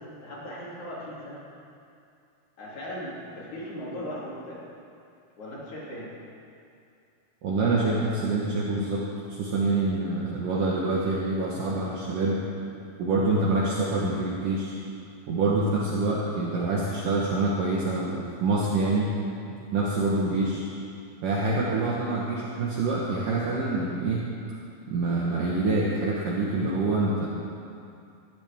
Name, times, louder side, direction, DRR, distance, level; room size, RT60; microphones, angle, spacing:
voice 1, 0.0-1.5 2.6-4.6 5.4-6.1, equal, 50° left, -7 dB, 4.1 m, -38 dB
voice 2, 7.4-9.0 9.3-12.4 13.0-14.8 15.3-19.1 19.7-20.7 21.2-24.3 24.9-27.3, right 2 dB, 65° right, -5 dB, 2.6 m, -26 dB
20.0 x 13.5 x 3.6 m, 2.5 s
omnidirectional pair, 4.6 m